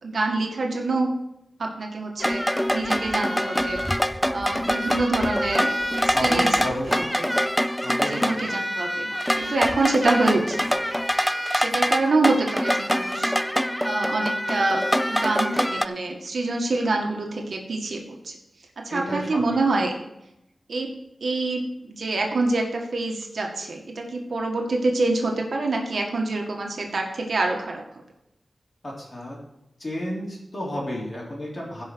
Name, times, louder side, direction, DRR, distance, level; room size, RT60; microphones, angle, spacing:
voice 1, 0.0-1.1 1.6-3.8 4.3-6.6 6.9-7.3 8.1-9.1 9.4-10.8 11.5-13.3 13.8-18.3 18.8-19.9 20.7-20.9 21.2-27.8, right 2 dB, 75° right, 1 dB, 1.8 m, -26 dB
sound 1, 2.2-15.9, equal, 5° left, 0.3 m, -24 dB
voice 2, 6.1-7.2 7.8-8.4 18.9-19.4 28.8-29.4 29.8-31.8, equal, 35° left, -3 dB, 3.3 m, -31 dB
16.0 x 5.6 x 4.6 m, 0.84 s
wide cardioid pair, 120°, 0 cm